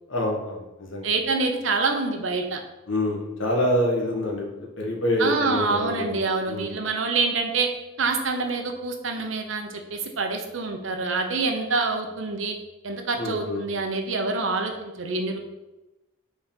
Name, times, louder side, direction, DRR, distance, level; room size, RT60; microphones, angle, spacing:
voice 1, 0.1-1.1 2.9-4.5 4.8-6.7 13.2-13.6, left 1 dB, 75° left, -1 dB, 1.5 m, -26 dB
voice 2, 1.0-2.6 5.2-7.7 8.0-12.5 12.8-15.4, right 3 dB, 75° right, 4 dB, 0.9 m, -26 dB
5.1 x 4.0 x 5.3 m, 1.0 s
head